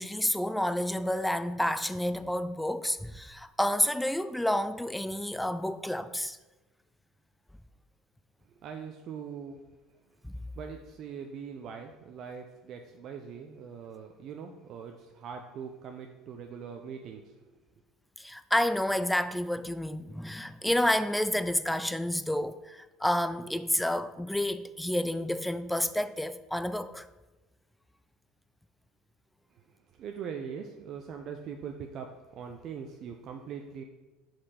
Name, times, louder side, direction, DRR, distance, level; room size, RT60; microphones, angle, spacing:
voice 1, 0.0-6.4 10.2-10.3 18.2-27.1, left 1 dB, 5° left, 0.4 m, -29 dB
voice 2, 8.5-9.6 10.6-17.3 29.5-29.6 29.9-33.8, right 6 dB, 55° right, 0.5 m, -42 dB
5.2 x 4.4 x 5.6 m
supercardioid pair, 100°, 0 cm